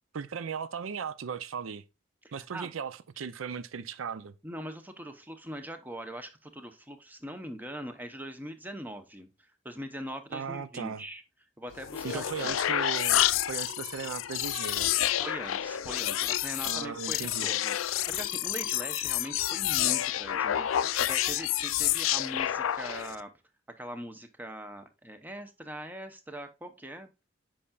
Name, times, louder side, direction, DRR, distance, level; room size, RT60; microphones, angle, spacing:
voice 1, 0.1-1.8 2.3-4.3 10.3-11.0 12.0-14.9 16.6-17.5, right 6 dB, 85° right, 0.5 m, -37 dB
voice 2, 2.2-2.7 4.4-9.3 9.6-11.2 11.6-12.5 15.2-23.3 23.8-27.1, right 1 dB, 10° right, 0.8 m, -41 dB
sound 1, 11.7-23.2, left 12 dB, 85° left, 0.4 m, -29 dB
8.4 x 5.6 x 2.3 m
head